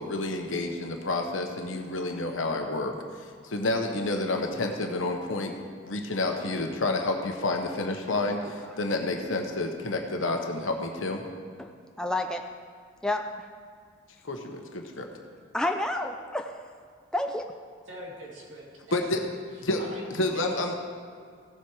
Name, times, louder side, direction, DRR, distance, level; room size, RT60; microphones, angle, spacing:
voice 1, 0.0-5.6 5.8-11.2 14.2-15.1 18.9-19.2 19.6-19.8 20.2-20.7, left 2 dB, 75° left, 3 dB, 1.1 m, -29 dB
voice 2, 12.0-12.5 13.0-13.4 15.5-16.6 17.1-17.4, left 1 dB, 5° left, 4 dB, 0.4 m, -29 dB
voice 3, 17.9-19.3 19.8-20.0 20.3-20.7, right 1 dB, 70° right, -3 dB, 2.7 m, -43 dB
16.0 x 7.5 x 4.8 m, 2.1 s
head